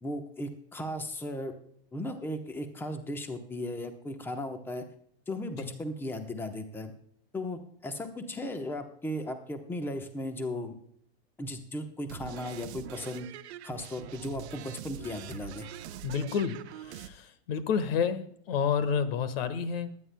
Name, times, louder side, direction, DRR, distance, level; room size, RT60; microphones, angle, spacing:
voice 1, 0.0-1.5 1.9-4.9 5.3-6.9 7.3-10.8 11.4-13.3 13.6-15.7, left 1 dB, 5° left, 7 dB, 1.0 m, -36 dB
sound 1, 12.1-17.1, right 10 dB, 90° right, 0.9 m, -44 dB
voice 2, 16.0-20.0, left 6 dB, 65° left, 12 dB, 1.5 m, -30 dB
22.0 x 9.9 x 2.2 m, 0.64 s
supercardioid pair, 150°, 32 cm